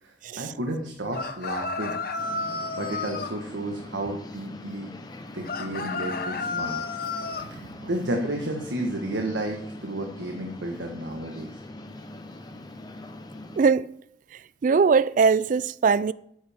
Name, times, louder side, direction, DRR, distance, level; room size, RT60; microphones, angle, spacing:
voice 1, 0.0-2.0 2.7-4.9 5.3-6.8 7.5-11.5, right 1 dB, 80° right, 1.4 m, -32 dB
sound 1, 1.1-3.3 5.4-7.5, left 4 dB, 50° left, 0.9 m, -31 dB
sound 2, 2.2-13.6, left 1 dB, 20° left, 0.9 m, -42 dB
voice 2, 13.6-14.0 14.6-16.1, right 5 dB, 45° right, 0.3 m, -20 dB
12.0 x 9.5 x 3.6 m
head